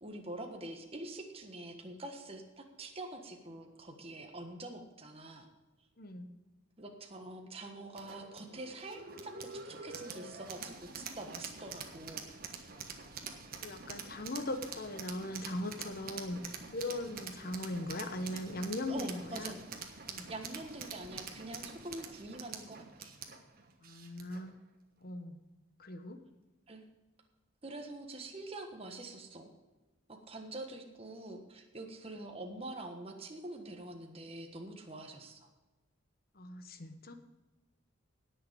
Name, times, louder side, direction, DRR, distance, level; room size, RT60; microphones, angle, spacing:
voice 1, 0.0-5.5 6.8-12.3 18.9-19.6 20.3-23.1 26.7-26.8 27.6-29.5 30.1-35.5, right 2 dB, 30° right, 3 dB, 1.4 m, -45 dB
voice 2, 6.0-6.3 13.6-16.4 16.7-19.5 20.1-20.3 23.8-24.5 25.0-25.4 25.8-26.2 36.3-37.1, left 1 dB, 45° left, 8 dB, 1.2 m, -39 dB
sound 1, 8.0-24.5, right 5 dB, 45° right, 1.4 m, -46 dB
18.0 x 6.7 x 5.3 m, 1.1 s
head